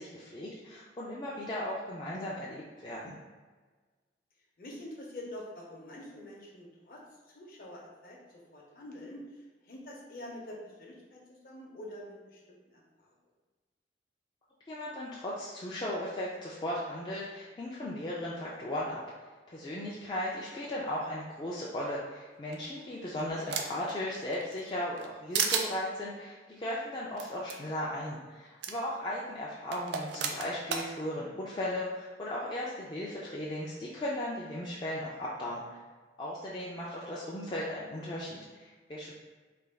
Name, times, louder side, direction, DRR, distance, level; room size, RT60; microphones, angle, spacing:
voice 1, 0.0-3.2 14.7-19.0 19.5-35.8 36.2-39.1, left 1 dB, 25° left, -6 dB, 0.3 m, -36 dB
voice 2, 4.6-7.0 7.3-8.2 8.5-13.1, left 1 dB, 50° left, -3 dB, 0.7 m, -46 dB
sound 1, 22.5-23.9 24.3-25.1 25.3-25.7 27.2-27.3 27.5-27.6 28.6-28.7 29.7-30.9, right 6 dB, 75° right, 0.3 m, -32 dB
3.3 x 2.2 x 3.4 m, 1.3 s
head